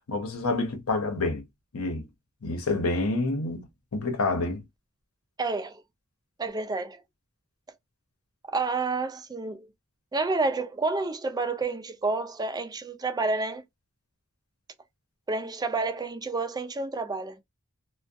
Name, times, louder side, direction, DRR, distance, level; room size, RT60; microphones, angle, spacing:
voice 1, 0.1-1.4 1.7-2.1 2.4-4.6, left 2 dB, 80° left, 0.8 m, -28 dB
voice 2, 5.4-5.8 6.4-7.0 8.5-9.7 10.1-13.6 15.3-17.4, right 3 dB, 20° right, 0.4 m, -29 dB
2.3 x 2.2 x 2.5 m
head